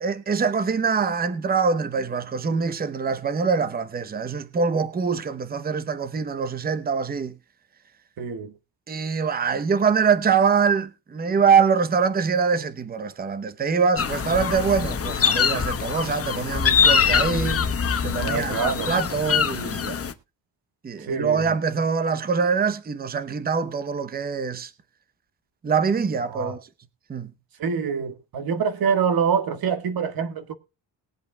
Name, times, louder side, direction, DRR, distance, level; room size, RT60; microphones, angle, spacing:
voice 1, 0.0-7.4 8.9-17.7 18.0-20.0 20.8-24.7 25.6-26.6 27.1-27.3, right 5 dB, 20° right, 0.7 m, -24 dB
voice 2, 8.2-8.5 18.2-18.9 21.1-21.5 26.3-26.5 27.6-30.5, right 6 dB, 55° right, 1.5 m, -25 dB
sound 1, 14.0-20.1, left 7 dB, 30° left, 1.0 m, -23 dB
20.5 x 8.1 x 2.2 m
cardioid pair, 155°, 43 cm